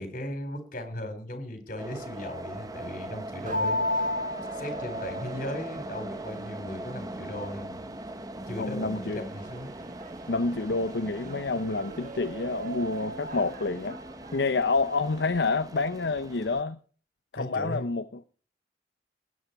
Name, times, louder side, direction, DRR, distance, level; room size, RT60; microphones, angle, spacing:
voice 1, 0.0-4.1 4.5-7.7 8.5-8.9 9.1-9.7 17.4-17.9, left 1 dB, 50° left, 4.3 m, -37 dB
sound 1, 1.8-16.6, right 1 dB, 20° right, 0.8 m, -40 dB
sound 2, 3.5-15.4, left 1 dB, 45° right, 1.2 m, -37 dB
voice 2, 8.6-9.2 10.3-14.0 14.3-16.8 17.3-18.2, left 3 dB, 65° left, 0.7 m, -28 dB
20.0 x 8.6 x 4.6 m
head